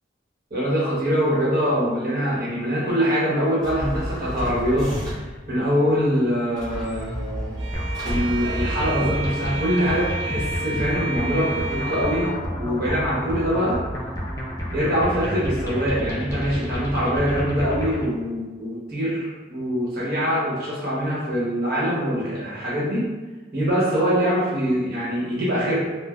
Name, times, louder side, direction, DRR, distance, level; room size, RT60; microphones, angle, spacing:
voice 1, 0.5-4.9 5.5-7.5 8.0-12.3 12.6-13.8 14.7-23.0 23.5-25.8, equal, 55° right, -8 dB, 1.0 m, -23 dB
sound 1, 3.6-5.4 6.6-9.4, equal, 20° right, 0.8 m, -31 dB
Bowed string instrument, 7.6-12.5, right 3 dB, 90° right, 0.3 m, -32 dB
sound 2, 7.7-18.0, equal, 15° left, 0.3 m, -30 dB
3.1 x 2.1 x 2.4 m, 1.2 s
head